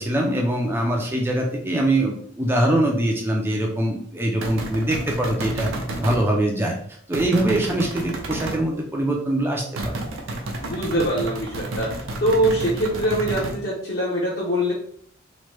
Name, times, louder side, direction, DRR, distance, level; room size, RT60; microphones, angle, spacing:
voice 1, 0.0-5.7 6.0-6.8 7.1-10.0, right 1 dB, 10° right, 0 dB, 0.3 m, -23 dB
sound 1, 4.4-6.2 7.1-8.6 9.8-13.6, right 1 dB, 80° right, 0.5 m, -30 dB
voice 2, 10.6-14.7, right 1 dB, 50° left, -6 dB, 0.7 m, -23 dB
3.0 x 2.1 x 3.1 m, 0.62 s
head